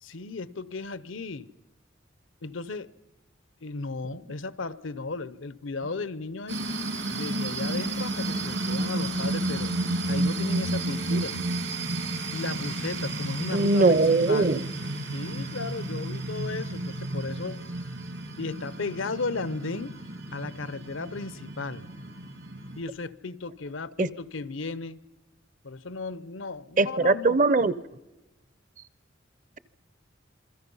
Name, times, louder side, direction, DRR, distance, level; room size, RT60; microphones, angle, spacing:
voice 1, 0.0-1.5 2.4-2.9 3.6-6.6 7.1-9.7 10.1-11.4 12.3-14.6 15.1-17.7 18.4-20.0 20.3-21.9 22.7-25.0 25.6-27.4, left 3 dB, 85° left, 0.8 m, -35 dB
sound 1, 6.5-22.8, right 2 dB, 75° right, 3.2 m, -32 dB
voice 2, 13.5-14.7 24.0-24.1 26.8-27.7, right 3 dB, 40° right, 0.6 m, -21 dB
27.5 x 22.0 x 5.5 m
head